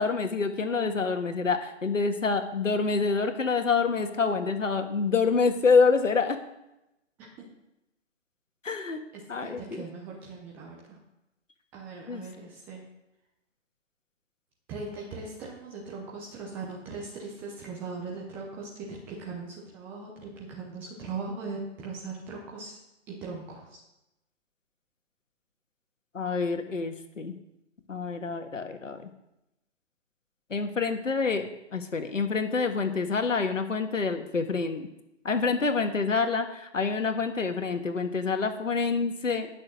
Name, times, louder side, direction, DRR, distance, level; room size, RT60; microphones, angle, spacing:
voice 1, 0.0-6.4 8.6-9.0 9.3-9.8 12.1-12.2 26.1-27.3 27.9-29.0 30.5-31.5 31.7-34.9 35.2-39.5, left 4 dB, 85° left, 7 dB, 1.6 m, -27 dB
voice 2, 9.1-11.0 11.7-12.8 14.7-22.8 23.1-23.8, right 4 dB, 5° right, -2 dB, 0.5 m, -39 dB
11.0 x 6.4 x 6.3 m, 0.90 s
hypercardioid pair, 145°, 37 cm